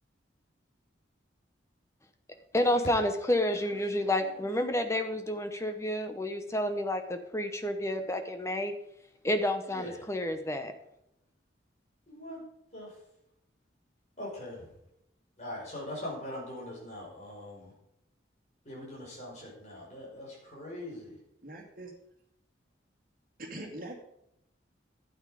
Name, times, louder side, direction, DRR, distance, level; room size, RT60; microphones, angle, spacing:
voice 1, 2.5-8.7 9.2-10.7, left 1 dB, 15° left, 7 dB, 0.9 m, -30 dB
voice 2, 9.7-10.1 12.1-12.4 12.7-12.9 14.2-14.7 15.4-17.7 18.7-21.2, left 1 dB, 40° left, -4 dB, 5.3 m, -42 dB
voice 3, 21.4-21.9 23.4-23.9, right 1 dB, 50° right, 2 dB, 2.2 m, -42 dB
12.0 x 9.1 x 5.1 m, 0.77 s
head